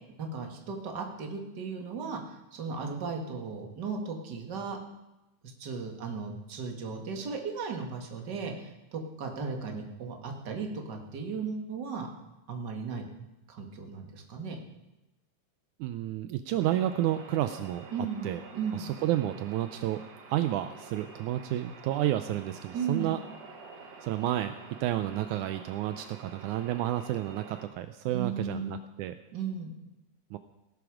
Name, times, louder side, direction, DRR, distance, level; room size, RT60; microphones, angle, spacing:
voice 1, 0.2-4.8 5.4-12.1 12.5-13.1 13.5-14.6 17.9-18.3 18.5-18.9 22.7-23.1 28.1-28.7 29.3-29.7, right 5 dB, 35° right, 2 dB, 2.2 m, -36 dB
voice 2, 15.8-17.9 18.2-18.4 18.7-20.0 20.3-23.2 24.0-24.5 24.8-29.1 30.3-30.4, right 13 dB, 80° right, 10 dB, 2.0 m, -30 dB
sound 1, 16.6-27.7, right 4 dB, 55° right, 2.7 m, -49 dB
17.5 x 12.0 x 5.0 m, 0.98 s
omnidirectional pair, 3.6 m